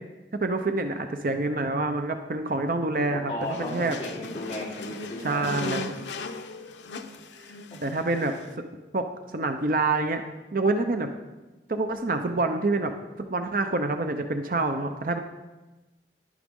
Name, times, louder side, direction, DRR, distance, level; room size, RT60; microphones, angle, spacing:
voice 1, 0.4-3.3 3.6-4.0 5.2-5.9 7.8-8.4 8.9-10.2 10.5-11.1 11.7-12.9 13.2-15.2, right 3 dB, 50° right, 6 dB, 0.6 m, -26 dB
voice 2, 3.0-5.7 7.7-7.8, left 1 dB, 25° left, -6 dB, 2.9 m, -35 dB
sound 1, 3.4-8.5, left 3 dB, 80° left, 0.7 m, -38 dB
11.0 x 10.5 x 3.7 m, 1.1 s
head